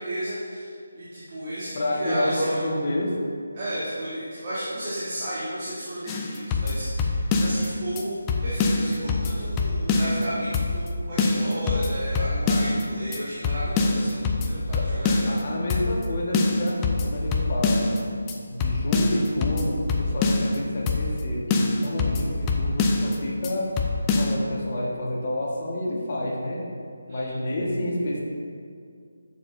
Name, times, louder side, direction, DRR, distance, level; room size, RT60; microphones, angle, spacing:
voice 1, 0.0-1.7 2.0-2.6 3.5-15.2 27.1-27.3, right 1 dB, 30° right, -10 dB, 1.8 m, -33 dB
voice 2, 1.7-3.2 14.5-14.9 15.3-17.9 18.5-23.7 24.1-26.6 27.1-28.2, left 1 dB, 35° left, -3 dB, 1.5 m, -29 dB
sound 1, 6.1-7.7 8.0-8.1 8.3-10.2 10.5-10.9 11.2-12.8 13.1-13.2 13.4-15.4 15.7-16.1 16.3-18.0 18.3-18.4 18.6-20.6 20.9-21.2 21.5-23.2 23.4-23.5 23.8-24.3, left 3 dB, 15° left, 0.5 m, -24 dB
10.5 x 7.0 x 2.7 m, 2.3 s
figure-of-eight pair, 155°, 0 cm